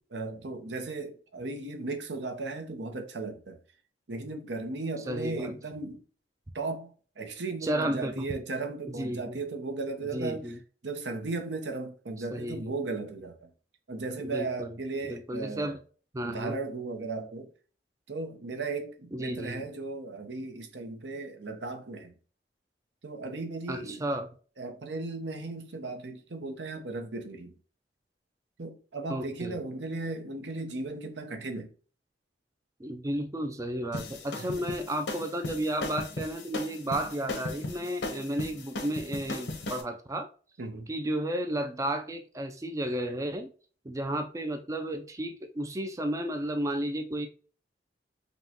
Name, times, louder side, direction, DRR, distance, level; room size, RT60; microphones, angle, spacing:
voice 1, 0.1-3.6 4.1-6.0 6.5-10.5 10.8-13.5 13.9-15.8 16.2-17.5 18.1-22.1 23.0-24.0 24.6-27.5 28.6-31.7 34.4-34.6 40.6-40.9, right 3 dB, 80° right, 0.8 m, -36 dB
voice 2, 5.1-5.5 7.6-8.1 9.0-9.4 10.1-10.6 12.3-12.7 14.2-14.7 15.1-15.8 16.1-16.6 19.1-19.6 23.7-24.3 29.1-29.6 32.8-40.3 40.9-43.5 43.8-47.3, right 1 dB, 20° right, 0.4 m, -33 dB
sound 1, 33.9-39.8, left 2 dB, 85° left, 0.9 m, -37 dB
5.3 x 2.2 x 2.8 m
head